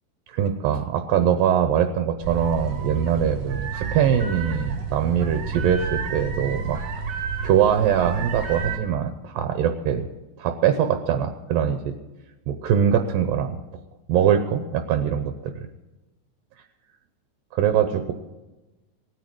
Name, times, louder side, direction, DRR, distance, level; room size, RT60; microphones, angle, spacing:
voice 1, 0.3-6.8 7.4-10.1 10.4-11.9 12.5-13.6 14.1-15.5 17.5-18.1, right 8 dB, 75° right, 7 dB, 2.5 m, -22 dB
sound 1, 2.2-8.8, right 5 dB, 50° right, 2.1 m, -30 dB
18.0 x 9.5 x 7.7 m, 1.1 s
omnidirectional pair, 4.4 m